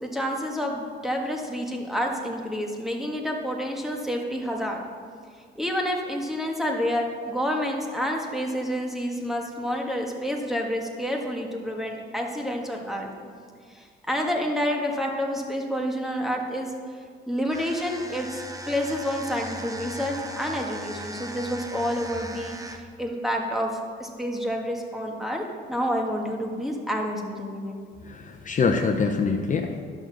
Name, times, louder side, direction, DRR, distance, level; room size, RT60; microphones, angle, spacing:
voice 1, 0.0-4.8 5.6-13.1 13.7-16.7 17.3-27.8, equal, ahead, 1 dB, 1.7 m, -29 dB
sound 1, 17.5-23.0, right 1 dB, 15° right, 1.0 m, -38 dB
voice 2, 28.1-29.8, left 4 dB, 40° left, 4 dB, 0.8 m, -24 dB
11.0 x 6.6 x 6.1 m, 2.1 s
cardioid pair, 90°, 20 cm